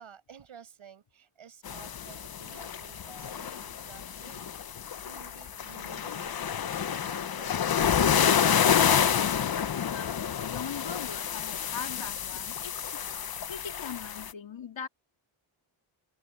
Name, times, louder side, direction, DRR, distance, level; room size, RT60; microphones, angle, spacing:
voice 1, 0.0-6.4 6.8-8.3, right 8 dB, 75° right, 6.0 m, -53 dB
sound 1, 1.7-14.3, left 8 dB, 50° left, 0.9 m, -29 dB
voice 2, 9.8-14.9, left 7 dB, 65° left, 3.3 m, -41 dB
wide cardioid pair, 135°, 49 cm